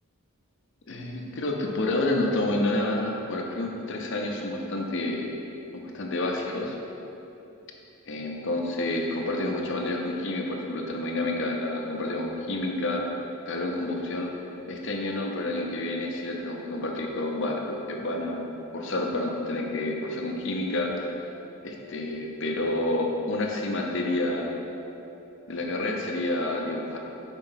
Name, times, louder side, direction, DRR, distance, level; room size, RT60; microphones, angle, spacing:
voice 1, 0.9-5.3 5.7-6.8 8.1-13.0 13.5-14.3 14.7-18.5 18.7-20.9 21.6-24.5 25.5-27.0, left 2 dB, 55° left, 1 dB, 0.7 m, -29 dB
4.9 x 4.4 x 5.7 m, 2.9 s
head